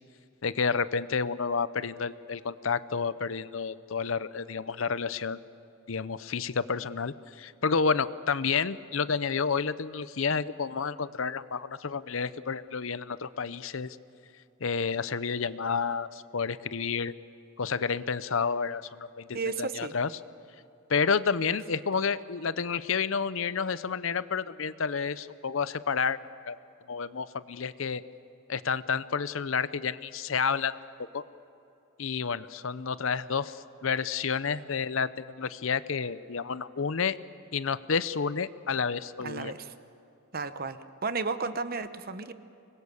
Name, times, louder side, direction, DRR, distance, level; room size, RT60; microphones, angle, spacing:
voice 1, 0.4-5.4 5.9-14.0 14.6-17.1 17.6-19.3 19.6-20.1 20.9-26.2 26.5-26.6 26.9-28.0 28.5-30.7 31.1-31.2 32.0-37.2 37.5-39.5, left 5 dB, 70° left, 15 dB, 0.7 m, -30 dB
voice 2, 19.3-19.9 39.2-39.7 40.3-42.3, right 4 dB, 45° right, 11 dB, 1.0 m, -33 dB
25.5 x 21.5 x 7.1 m, 2.8 s
head